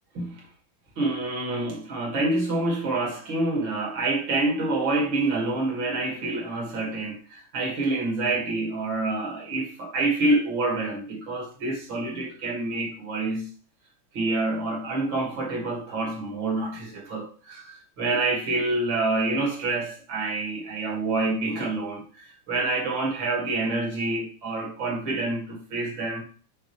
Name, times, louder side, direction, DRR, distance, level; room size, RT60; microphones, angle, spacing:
voice 1, 1.0-13.5 14.1-26.2, right 2 dB, 80° right, 2.8 m, -27 dB
6.4 x 6.1 x 3.2 m
omnidirectional pair, 2.1 m